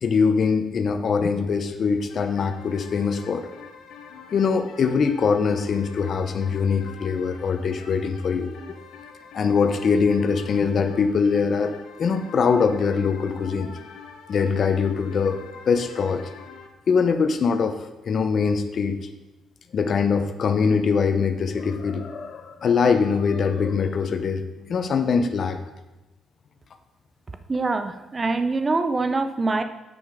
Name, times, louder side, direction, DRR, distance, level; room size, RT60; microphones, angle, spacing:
voice 1, 0.0-3.5 4.3-8.8 9.3-13.7 14.3-16.3 16.9-17.8 18.0-19.0 19.7-25.6, left 5 dB, 55° left, 8 dB, 0.8 m, -23 dB
sound 1, 2.1-16.7, left 6 dB, 85° left, 1.0 m, -45 dB
voice 2, 27.5-29.6, right 3 dB, 30° right, 9 dB, 0.7 m, -24 dB
7.9 x 6.3 x 5.1 m, 1.1 s
cardioid pair, 90°, 0 cm